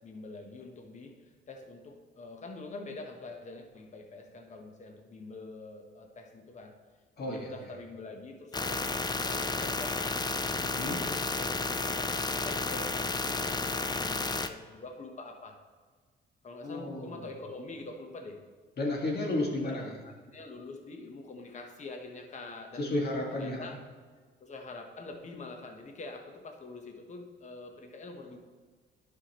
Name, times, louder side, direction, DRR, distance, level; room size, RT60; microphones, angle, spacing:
voice 1, 0.0-6.8 7.2-10.3 10.7-15.6 16.4-18.4 19.6-22.9 23.3-23.8 24.4-28.4, left 3 dB, 35° left, 4 dB, 1.0 m, -45 dB
voice 2, 7.2-7.5 10.6-11.0 16.6-17.2 18.8-19.8 22.8-23.6, left 1 dB, 55° left, -1 dB, 1.9 m, -32 dB
sound 1, 8.5-14.5, left 3 dB, 20° left, 0.4 m, -32 dB
11.5 x 5.7 x 3.0 m, 1.5 s
cardioid pair, 90°, 20 cm